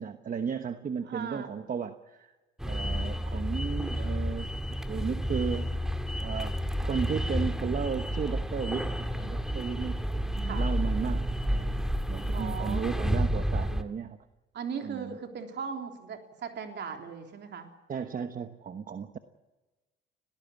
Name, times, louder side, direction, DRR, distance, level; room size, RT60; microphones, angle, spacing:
voice 1, 0.0-2.4 2.6-4.5 4.9-5.9 6.2-6.6 6.8-14.2 14.8-15.2 17.9-19.2, right 6 dB, 45° right, 8 dB, 1.2 m, -35 dB
voice 2, 1.1-1.5 10.4-10.7 12.3-12.9 14.5-17.7, right 6 dB, 60° right, 4 dB, 3.6 m, -38 dB
sound 1, 2.6-13.8, equal, ahead, 1.9 m, -30 dB
19.0 x 18.0 x 8.5 m, 1.2 s
cardioid pair, 90°, 20 cm